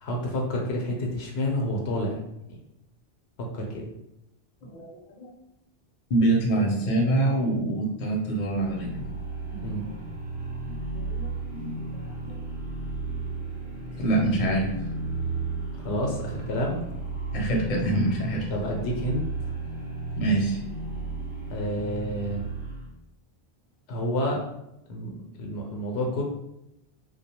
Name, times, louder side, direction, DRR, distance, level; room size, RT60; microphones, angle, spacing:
voice 1, 0.0-2.2 2.5-2.6 3.4-3.9 9.5-9.9 15.8-16.8 18.5-19.5 21.5-22.4 23.9-24.4 24.9-26.2, equal, 80° left, 0 dB, 0.8 m, -29 dB
voice 2, 6.1-8.9 9.8-9.9 10.9-12.4 14.0-14.7 17.3-18.5 20.2-20.6, right 2 dB, 50° left, -2 dB, 0.7 m, -25 dB
sound 1, 8.2-22.9, right 3 dB, 85° right, 1.0 m, -34 dB
2.3 x 2.1 x 2.7 m, 0.84 s
omnidirectional pair, 1.0 m